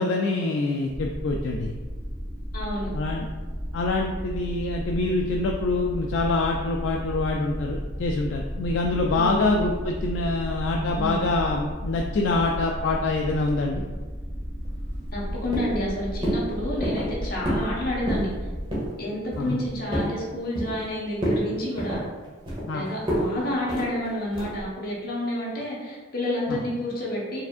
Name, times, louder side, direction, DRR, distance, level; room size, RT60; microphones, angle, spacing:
voice 1, 0.0-1.7 2.9-3.3 3.7-13.8 19.4-19.6 22.7-22.8 26.5-26.6, left 3 dB, 70° left, 1 dB, 0.3 m, -25 dB
sound 1, 0.9-18.9, equal, 10° left, 0.7 m, -34 dB
voice 2, 2.5-2.9 9.1-9.4 10.9-11.2 15.1-18.3 19.0-22.0 22.7-27.4, left 1 dB, 50° left, -5 dB, 1.3 m, -29 dB
sound 2, 14.6-15.3 15.5-15.9 16.2-16.4 16.8-17.1 17.4-17.7 18.0-18.3 18.7-18.9 19.3-20.1 20.5-20.9 21.2-21.4 21.8-22.7 23.1-23.3 23.7-23.9 24.3-24.6, equal, 25° right, 1.2 m, -28 dB
4.7 x 3.5 x 2.5 m, 1.3 s
head